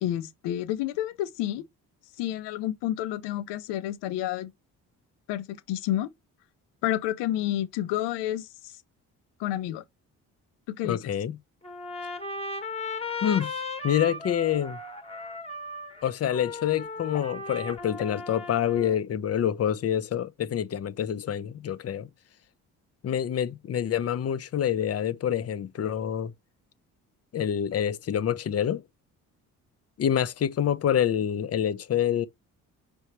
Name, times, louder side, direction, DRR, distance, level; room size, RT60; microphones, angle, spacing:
voice 1, 0.0-1.6 2.2-4.5 5.3-6.1 6.8-8.7 9.4-9.8 10.7-11.0, left 13 dB, 70° left, 0.7 m, -30 dB
voice 2, 10.8-11.4 13.2-13.5 13.8-14.8 16.0-22.1 23.0-26.3 27.3-28.8 30.0-32.3, left 9 dB, 35° left, 0.6 m, -27 dB
Trumpet, 11.6-19.0, left 3 dB, 15° left, 1.1 m, -36 dB
5.4 x 3.4 x 2.9 m
hypercardioid pair, 45°, 43 cm